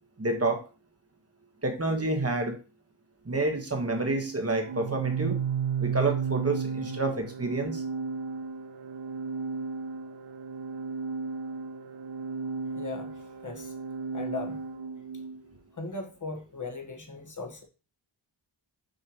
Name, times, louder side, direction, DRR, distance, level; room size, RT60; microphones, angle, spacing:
voice 1, 0.2-0.6 1.6-2.6 3.2-5.4 5.8-7.8, right 2 dB, 30° right, 4 dB, 1.3 m, -28 dB
Organ, 4.6-15.4, right 5 dB, 75° right, 0.7 m, -34 dB
voice 2, 12.7-13.1 13.4-13.7 14.1-14.6 15.8-17.6, left 3 dB, 40° left, 4 dB, 1.4 m, -38 dB
6.6 x 5.6 x 3.0 m, 0.33 s
wide cardioid pair, 120°, 49 cm